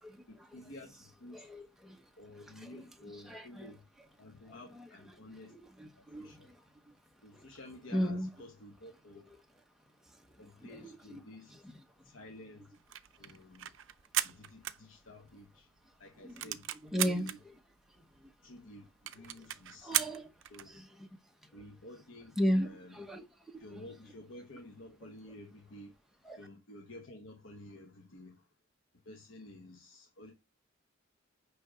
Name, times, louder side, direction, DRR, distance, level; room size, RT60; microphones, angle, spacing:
voice 1, 0.3-1.5 2.2-3.9 4.2-5.5 5.8-6.5 7.2-9.3 10.4-11.6 12.0-12.8 13.2-13.8 14.2-15.7 16.0-16.6 17.0-17.4 18.4-20.1 20.5-20.7 21.5-22.4 22.6-22.9 23.6-25.9 26.4-28.5 29.0-30.3, left 1 dB, 75° left, 1.1 m, -52 dB
voice 2, 1.3-2.0 2.6-2.8 3.1-3.7 4.5-4.9 5.5-6.6 6.9-7.0 7.3-7.5 7.9-8.3 10.4-11.2 16.2-16.4 16.8-17.5 19.8-20.3 20.7-21.1 22.4-23.2 23.5-23.6 26.2-26.4, equal, ahead, 1.0 m, -36 dB
sound 1, 12.7-15.4 15.8-15.9 16.1-17.4 18.0-18.1 18.3-18.4 18.6-18.7 19.1-20.7, right 13 dB, 65° right, 0.5 m, -36 dB
9.6 x 3.4 x 5.1 m
head